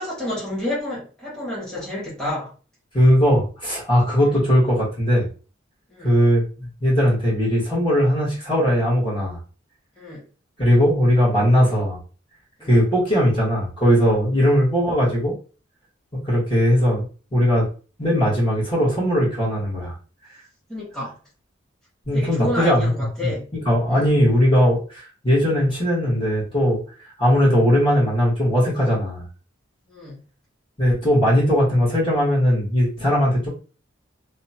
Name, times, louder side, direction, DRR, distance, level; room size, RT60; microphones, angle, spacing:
voice 1, 0.0-2.5 5.9-6.1 10.0-10.2 12.6-12.8 14.4-14.5 20.7-21.2 22.1-23.5 23.9-24.1 29.9-30.2, left 1 dB, 5° left, -8 dB, 1.2 m, -30 dB
voice 2, 2.9-5.3 6.0-9.4 10.6-12.0 12.6-15.3 16.2-17.0 17.3-17.7 18.0-19.9 22.1-22.9 23.2-23.3 23.6-26.8 27.2-29.2 30.8-33.5, equal, 25° left, -7 dB, 1.2 m, -19 dB
2.8 x 2.2 x 2.7 m, 0.37 s
head